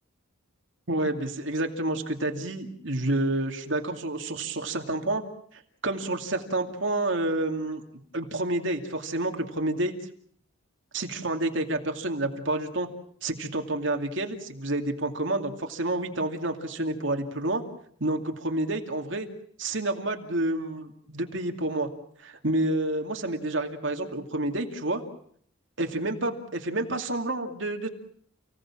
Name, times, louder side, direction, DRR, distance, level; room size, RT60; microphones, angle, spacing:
voice 1, 0.9-5.2 5.5-7.8 8.1-9.9 10.9-12.9 13.2-17.6 18.0-19.3 19.6-21.9 22.2-25.0 25.8-27.9, right 2 dB, 60° right, 4 dB, 2.5 m, -29 dB
30.0 x 17.5 x 7.4 m, 0.63 s
head